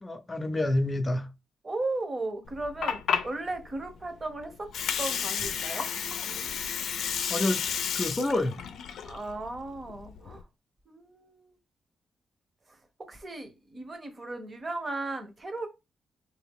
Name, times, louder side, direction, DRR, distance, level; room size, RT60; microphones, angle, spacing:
voice 1, 0.0-1.3 7.3-7.6 7.9-8.6, left 1 dB, 20° left, 0.6 m, -28 dB
voice 2, 1.6-4.7 5.0-5.9 9.0-10.4 10.9-11.5 13.1-15.7, right 2 dB, 30° right, 1.0 m, -36 dB
Water, 2.5-10.4, left 7 dB, 85° left, 0.5 m, -32 dB
3.8 x 2.7 x 3.5 m
cardioid pair, 115°, 0 cm